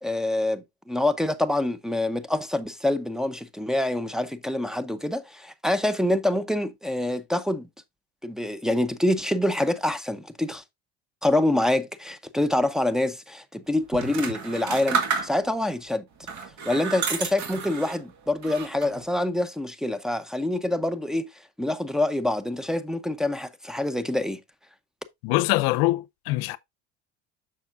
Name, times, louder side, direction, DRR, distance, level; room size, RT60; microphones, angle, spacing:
voice 1, 0.0-7.7 8.2-10.6 11.2-16.0 16.6-21.3 21.6-24.4, left 1 dB, ahead, 0.6 m, -26 dB
sound 1, 13.9-15.7 16.2-18.0 18.4-19.0, right 5 dB, 50° right, 1.9 m, -30 dB
voice 2, 25.2-26.6, left 19 dB, 65° left, 0.7 m, -23 dB
7.1 x 6.1 x 2.5 m
supercardioid pair, 105°, 37 cm